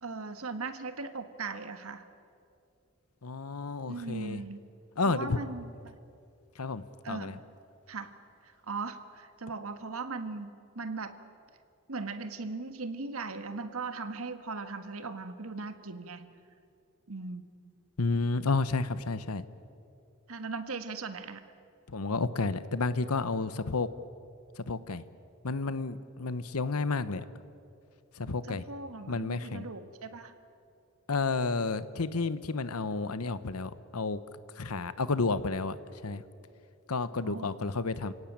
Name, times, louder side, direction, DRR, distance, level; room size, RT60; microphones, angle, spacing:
voice 1, 0.0-2.1 3.9-4.6 5.0-6.0 7.0-7.4 7.9-8.1 8.4-11.2 11.9-16.3 17.1-17.5 20.3-21.4 28.4-30.3 37.2-37.7, right 4 dB, 75° right, 9 dB, 1.6 m, -39 dB
voice 2, 3.2-4.4 5.0-5.4 6.6-7.3 18.0-19.4 21.9-23.9 24.6-25.0 25.4-27.2 28.2-28.6 29.1-29.6 31.1-34.2 34.6-35.8 36.0-36.2 36.9-38.1, left 3 dB, 85° left, 14 dB, 1.0 m, -31 dB
28.5 x 17.5 x 8.8 m, 2.5 s
head